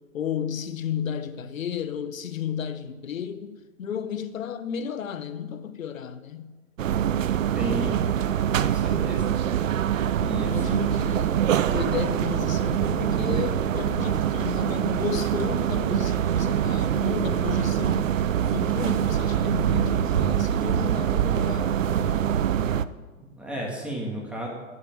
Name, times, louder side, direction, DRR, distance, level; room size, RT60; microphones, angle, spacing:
voice 1, 0.0-6.5 10.4-18.1 18.4-22.2, left 8 dB, 75° left, 1.1 m, -33 dB
sound 1, 6.8-22.9, right 9 dB, 70° right, 0.6 m, -24 dB
voice 2, 7.6-8.0 8.6-9.4 10.2-10.8 23.2-24.5, right 1 dB, 5° right, 2.0 m, -33 dB
9.5 x 6.6 x 8.7 m
hypercardioid pair, 140°, 40 cm